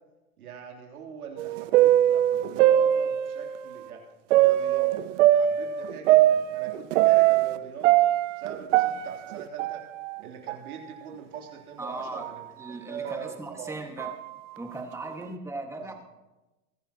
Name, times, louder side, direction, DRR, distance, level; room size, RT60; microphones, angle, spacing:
voice 1, 0.4-4.0 4.3-4.9 5.3-7.9 8.4-9.8 10.2-13.8 15.0-15.1, right 7 dB, 85° right, 0 dB, 3.4 m, -41 dB
sound 1, 1.4-3.6 4.3-7.6 7.8-10.2 10.5-10.6 11.3-11.4 12.2-12.4 13.1-13.2 14.0-14.3, right 13 dB, 55° right, 0.7 m, -21 dB
voice 2, 11.8-12.3 12.6-14.1 14.6-15.9, right 2 dB, 5° right, 3 dB, 1.8 m, -38 dB
23.0 x 11.0 x 3.0 m, 1.1 s
hypercardioid pair, 120°, 43 cm